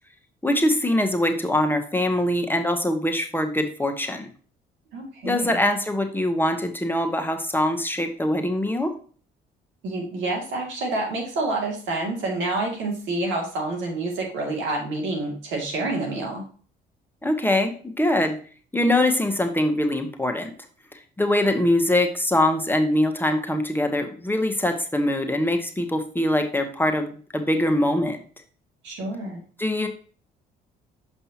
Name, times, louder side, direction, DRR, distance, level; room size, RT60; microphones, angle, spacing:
voice 1, 0.4-4.3 5.2-8.9 17.2-18.4 18.7-20.5 21.2-28.2 29.6-29.9, left 1 dB, 10° left, 5 dB, 1.1 m, -23 dB
voice 2, 4.9-5.5 9.8-16.4 28.8-29.4, right 2 dB, 75° right, 0 dB, 2.4 m, -28 dB
6.9 x 5.5 x 2.8 m, 0.41 s
supercardioid pair, 65°, 20 cm